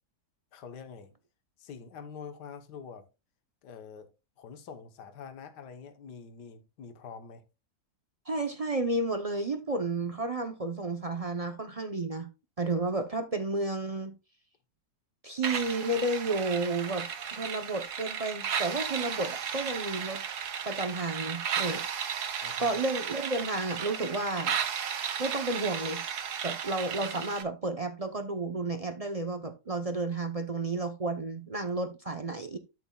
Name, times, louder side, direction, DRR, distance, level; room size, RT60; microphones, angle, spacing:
voice 1, 0.5-1.1 1.6-3.0 3.6-4.1 4.4-7.4 22.4-22.8, left 6 dB, 75° left, 1.7 m, -45 dB
voice 2, 8.3-12.3 12.6-14.1 15.2-20.2 20.6-21.8 22.6-24.6 25.2-26.0 26.4-32.6, right 2 dB, 45° right, 0.4 m, -32 dB
sound 1, 15.4-27.4, right 7 dB, 70° right, 1.6 m, -34 dB
12.5 x 6.9 x 2.3 m
omnidirectional pair, 1.8 m